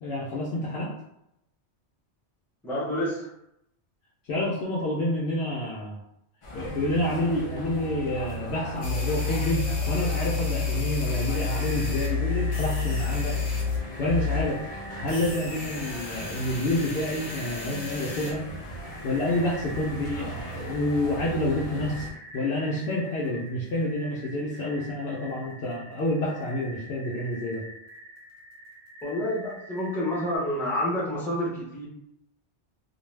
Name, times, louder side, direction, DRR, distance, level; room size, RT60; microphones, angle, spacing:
voice 1, 0.0-0.9 4.3-6.0 6.5-13.4 14.0-14.6 15.0-18.5 19.0-22.1 22.3-27.6, left 1 dB, 70° left, -6 dB, 0.8 m, -28 dB
voice 2, 2.6-3.3 29.0-31.9, left 1 dB, ahead, -6 dB, 0.6 m, -28 dB
sound 1, 6.4-22.1, right 1 dB, 55° left, 0.3 m, -39 dB
sound 2, 8.8-13.8 14.1-14.4 15.1-18.3, left 4 dB, 85° left, 1.1 m, -30 dB
sound 3, 11.1-30.4, right 1 dB, 65° right, 0.9 m, -46 dB
2.5 x 2.1 x 3.1 m, 0.80 s
omnidirectional pair, 1.1 m